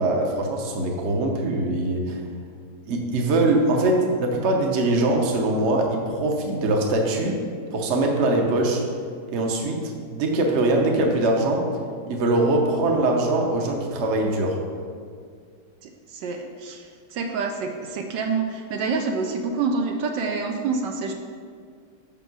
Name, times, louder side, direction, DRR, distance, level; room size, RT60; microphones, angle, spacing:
voice 1, 0.0-2.2 2.9-7.4 7.7-8.8 9.3-11.7 12.1-14.6, right 2 dB, 50° right, 1 dB, 0.9 m, -22 dB
voice 2, 15.8-21.1, right 4 dB, 75° right, 3 dB, 1.2 m, -27 dB
5.9 x 5.4 x 6.0 m, 2.1 s
omnidirectional pair, 2.0 m